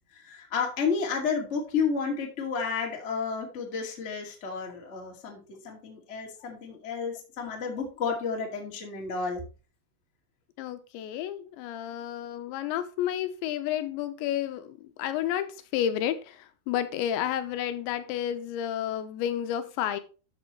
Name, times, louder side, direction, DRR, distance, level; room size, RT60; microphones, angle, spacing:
voice 1, 0.1-9.4, left 5 dB, 65° left, 0.6 m, -31 dB
voice 2, 10.6-20.0, left 10 dB, 80° left, 2.9 m, -31 dB
12.5 x 6.8 x 3.1 m
omnidirectional pair, 5.6 m